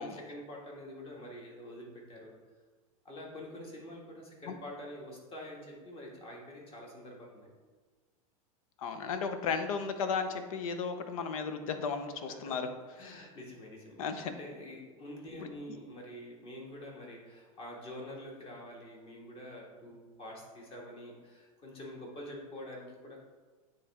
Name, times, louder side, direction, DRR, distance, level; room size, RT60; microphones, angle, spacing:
voice 1, 0.0-2.3 3.1-7.5 12.3-12.5 13.0-14.0 14.4-23.2, left 1 dB, 30° left, -2 dB, 1.8 m, -46 dB
voice 2, 8.8-12.7 13.0-13.3 14.0-14.3 15.4-15.5, left 5 dB, 75° left, 8 dB, 0.7 m, -35 dB
9.2 x 3.3 x 3.6 m, 1.4 s
hypercardioid pair, 110°, 18 cm